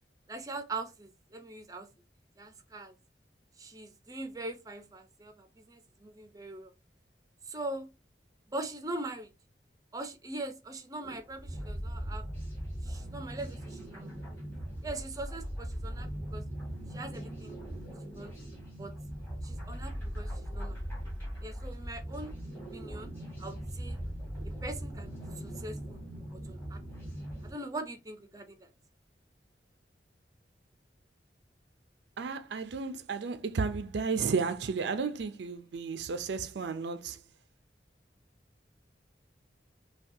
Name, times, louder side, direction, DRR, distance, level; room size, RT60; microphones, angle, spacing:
voice 1, 0.3-1.9 2.4-2.9 3.6-6.7 7.5-7.9 8.5-9.3 9.9-12.3 12.8-14.1 14.8-16.4 16.9-17.6 18.1-18.3 18.8-18.9 19.4-20.8 21.4-22.3 22.7-23.1 23.4-24.0 24.5-26.0 26.5-26.8 27.4-28.7, right 2 dB, 20° right, 0.6 m, -41 dB
sound 1, 11.0-27.5, equal, 10° left, 2.2 m, -40 dB
voice 2, 32.2-37.2, right 5 dB, 75° right, 0.4 m, -33 dB
5.7 x 2.3 x 2.7 m
head